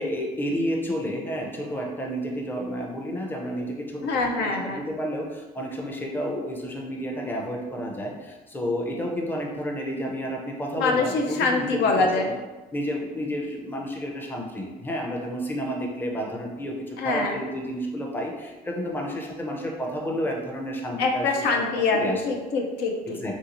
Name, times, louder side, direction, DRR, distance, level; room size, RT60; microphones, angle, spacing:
voice 1, 0.0-12.2 12.7-21.6 21.9-22.2 23.1-23.4, equal, 10° left, 0 dB, 0.5 m, -31 dB
voice 2, 4.0-4.9 10.7-12.3 17.0-17.4 21.0-23.2, left 3 dB, 80° left, 2 dB, 0.5 m, -24 dB
3.1 x 2.6 x 2.9 m, 1.2 s
cardioid pair, 110°, 17 cm